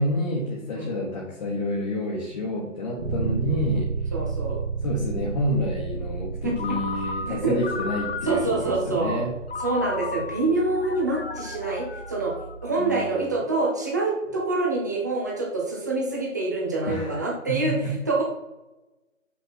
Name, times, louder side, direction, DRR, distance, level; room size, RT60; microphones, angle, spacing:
voice 1, 0.0-3.9 4.8-9.3 12.8-13.3 16.9-17.1 17.5-17.9, left 1 dB, 30° left, -4 dB, 1.2 m, -28 dB
Bass guitar, 3.0-12.8, right 5 dB, 55° right, 1.9 m, -33 dB
voice 2, 4.1-4.6 6.4-6.8 7.3-7.6 8.2-9.2 9.6-12.3 12.6-18.2, right 2 dB, 15° right, -2 dB, 0.6 m, -26 dB
Ringtone, 6.6-8.7 9.5-12.8, left 4 dB, 50° left, 0.6 m, -35 dB
5.6 x 5.6 x 4.4 m, 0.99 s
figure-of-eight pair, 150°, 39 cm